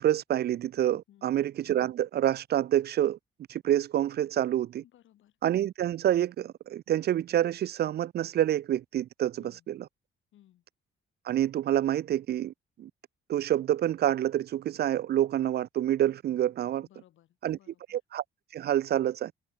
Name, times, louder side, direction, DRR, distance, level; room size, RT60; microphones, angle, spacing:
voice 1, 0.0-3.2 3.5-4.8 5.4-9.7 11.3-12.5 12.8-12.9 13.3-16.9 17.4-17.6 17.9-18.2 18.5-19.3, right 12 dB, 55° right, 0.4 m, -27 dB
voice 2, 1.1-1.4 4.8-5.4 9.4-9.7 10.3-10.6 16.8-18.0, left 12 dB, 80° left, 5.6 m, -60 dB
cardioid pair, 90°, 20 cm